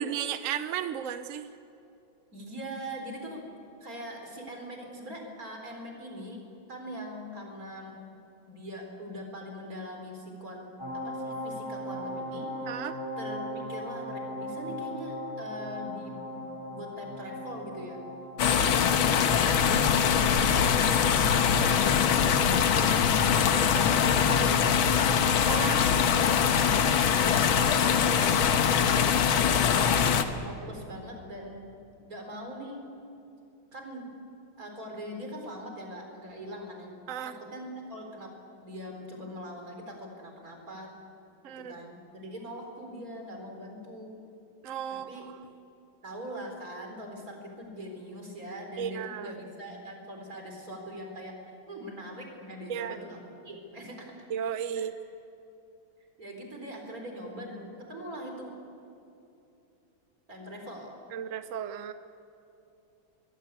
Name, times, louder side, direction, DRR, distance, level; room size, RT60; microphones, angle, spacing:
voice 1, 0.0-1.5 12.7-13.0 18.4-18.6 24.1-24.5 25.5-26.0 37.1-37.3 41.4-41.7 44.6-45.3 48.8-49.3 52.7-53.0 54.3-54.9 61.1-61.9, right 9 dB, 60° right, 10 dB, 0.8 m, -34 dB
voice 2, 2.3-3.4 3.8-8.0 8.4-12.7 13.2-16.3 16.7-18.0 18.4-18.8 19.6-23.0 23.3-24.8 25.4-28.9 29.5-31.7 32.1-32.8 33.7-34.1 34.6-37.0 37.2-38.3 38.6-40.9 41.6-44.2 44.9-45.2 46.0-54.1 54.7-54.9 56.2-58.5 60.3-61.0, equal, 45° right, 2 dB, 4.6 m, -42 dB
sound 1, 10.8-26.4 26.7-26.8, left 1 dB, 10° left, 4.5 m, -40 dB
sound 2, 18.4-30.2, left 7 dB, 90° left, 1.9 m, -23 dB
24.0 x 21.0 x 8.4 m, 2.7 s
omnidirectional pair, 2.2 m